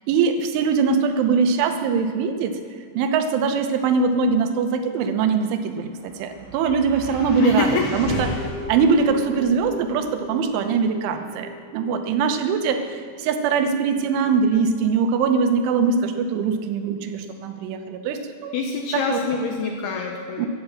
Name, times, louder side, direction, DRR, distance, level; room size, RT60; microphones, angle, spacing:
voice 1, 0.0-2.6 2.9-18.6 18.9-19.2 20.4-20.5, right 5 dB, 75° right, 7 dB, 3.2 m, -22 dB
sound 1, 5.5-17.9, left 1 dB, 35° left, 1.8 m, -37 dB
voice 2, 7.4-8.2 18.5-20.5, left 4 dB, 85° left, 2 dB, 2.2 m, -25 dB
13.5 x 10.0 x 7.5 m, 2.1 s
omnidirectional pair, 6.0 m